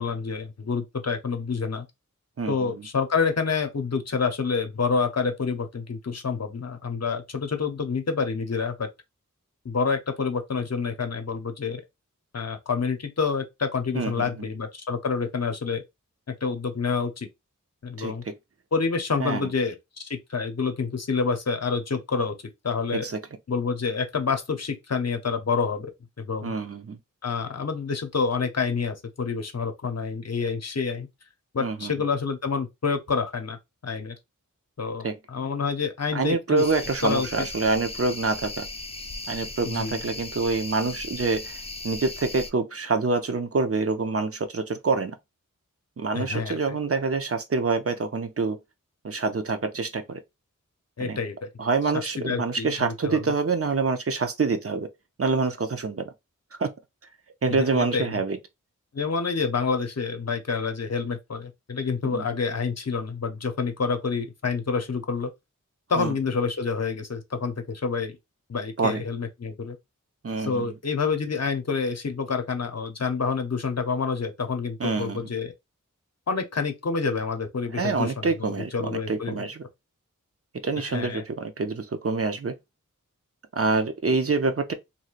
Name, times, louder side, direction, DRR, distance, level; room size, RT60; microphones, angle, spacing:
voice 1, 0.0-1.9 2.5-8.9 9.6-11.8 12.3-15.8 16.3-17.3 17.8-18.2 18.7-22.4 22.6-23.1 23.5-25.9 26.2-26.5 27.2-31.1 31.5-33.6 33.8-34.2 34.8-36.6 37.0-37.5 39.6-40.0 46.1-46.8 51.0-51.5 52.2-53.2 57.5-58.2 58.9-65.3 65.9-68.2 68.5-69.8 70.5-75.5 76.3-79.4 80.8-81.2, left 5 dB, 50° left, 0.7 m, -28 dB
voice 2, 2.4-2.9 13.9-14.5 18.0-18.3 19.2-19.5 22.9-23.2 26.4-27.0 31.6-31.9 35.0-35.2 36.1-38.7 39.3-41.5 41.8-45.2 46.0-48.6 49.0-50.2 51.0-51.2 51.6-54.9 55.2-56.1 56.5-56.7 57.4-58.4 62.0-62.2 65.9-66.1 68.8-69.0 70.2-70.7 74.8-75.2 77.7-79.6 80.6-82.5 83.6-84.7, right 4 dB, 45° right, 0.5 m, -26 dB
sound 1, 36.6-42.5, left 2 dB, 20° left, 0.4 m, -37 dB
3.1 x 2.7 x 2.4 m
wide cardioid pair, 45°, 32 cm